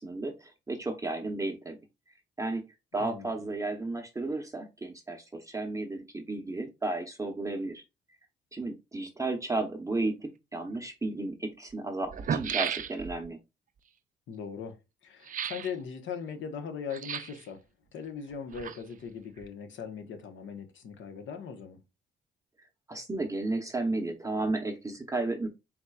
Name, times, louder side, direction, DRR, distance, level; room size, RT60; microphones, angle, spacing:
voice 1, 0.0-1.8 2.4-2.6 2.9-7.8 8.5-13.4 22.9-25.5, right 2 dB, 15° right, 0.8 m, -33 dB
voice 2, 3.0-3.5 14.3-14.8 15.0-17.6 17.9-21.8, left 6 dB, 75° left, 1.1 m, -39 dB
sound 1, 10.7-10.8 11.7-11.8 12.0-13.3 15.2-15.7 16.9-17.5 18.3-19.1 19.4-19.5, right 8 dB, 45° right, 0.5 m, -34 dB
4.3 x 4.2 x 2.4 m
cardioid pair, 90°, 20 cm